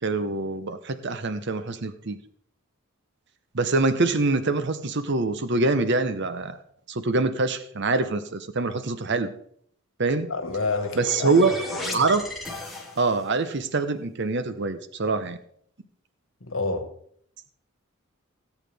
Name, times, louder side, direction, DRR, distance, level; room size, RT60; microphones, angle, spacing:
voice 1, 0.0-2.2 3.5-6.6 6.9-9.3 10.0-10.3 11.0-11.6 11.9-12.3 13.0-15.4, right 3 dB, 55° right, 0.8 m, -24 dB
voice 2, 10.3-12.0 16.4-16.9, left 3 dB, 70° left, 1.6 m, -29 dB
sound 1, 10.4-13.4, left 2 dB, ahead, 2.0 m, -36 dB
17.5 x 8.3 x 3.5 m
head